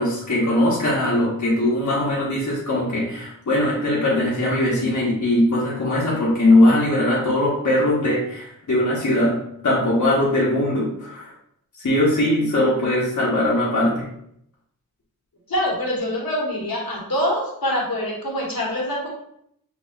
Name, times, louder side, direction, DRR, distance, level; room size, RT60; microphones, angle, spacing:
voice 1, 0.0-9.4 9.6-11.3 11.8-14.1, left 1 dB, 55° left, -5 dB, 1.0 m, -20 dB
voice 2, 15.5-19.1, equal, 75° left, -3 dB, 1.3 m, -25 dB
6.1 x 2.2 x 2.3 m, 0.71 s
wide cardioid pair, 55°, 35 cm